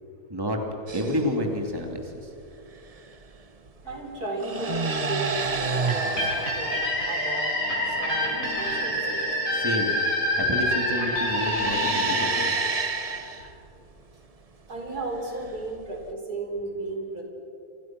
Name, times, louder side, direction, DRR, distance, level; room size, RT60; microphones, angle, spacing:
voice 1, 0.3-0.6 0.9-2.3 9.5-10.0 10.4-12.6, equal, 15° right, 2 dB, 2.6 m, -29 dB
sound 1, 0.9-1.3 2.9-3.2 4.3-6.7 10.9-13.5 15.4-16.1, right 4 dB, 30° right, 0.8 m, -29 dB
sound 2, 3.8-12.5, left 3 dB, 80° left, 4.3 m, -40 dB
voice 2, 3.9-9.2 14.7-17.2, right 2 dB, 75° right, 1 dB, 5.2 m, -34 dB
sound 3, 5.9-13.5, left 1 dB, 55° left, 7.1 m, -27 dB
29.5 x 26.0 x 6.1 m, 2.6 s
omnidirectional pair, 1.6 m